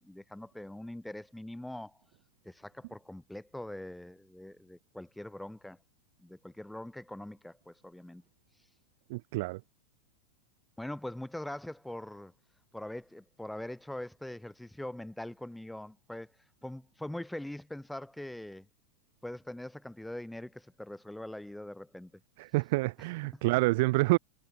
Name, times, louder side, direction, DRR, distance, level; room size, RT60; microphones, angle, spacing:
voice 1, 0.0-2.0 2.4-5.8 6.2-8.2 10.8-12.3 12.7-16.3 16.6-18.7 19.2-22.2 23.0-23.1 23.3-23.4, left 1 dB, 5° left, 6.4 m, -42 dB
voice 2, 9.1-9.6 22.4-24.2, right 23 dB, 60° right, 1.0 m, -27 dB
supercardioid pair, 130°, 0 cm